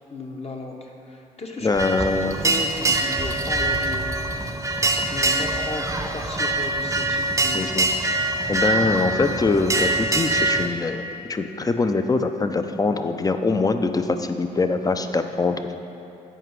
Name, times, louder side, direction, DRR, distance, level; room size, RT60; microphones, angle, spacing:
voice 1, 0.1-4.6 5.1-7.7 8.8-8.9, left 2 dB, 40° left, 1 dB, 1.1 m, -35 dB
voice 2, 1.6-2.4 7.5-7.9 8.5-15.7, left 3 dB, 20° left, 8 dB, 0.5 m, -23 dB
sound 1, 1.7-10.7, right 2 dB, 20° right, 0.7 m, -24 dB
7.8 x 4.9 x 4.7 m, 2.8 s
supercardioid pair, 50°, 17 cm